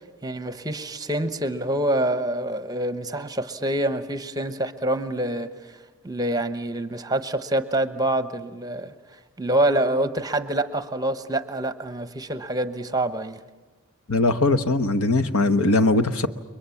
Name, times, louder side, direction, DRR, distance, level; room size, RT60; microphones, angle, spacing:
voice 1, 0.2-5.8 6.0-8.9 9.4-13.4, right 1 dB, 15° right, 11 dB, 0.9 m, -26 dB
voice 2, 14.1-16.3, left 2 dB, 75° left, 10 dB, 1.1 m, -20 dB
30.0 x 23.0 x 7.2 m, 1.2 s
head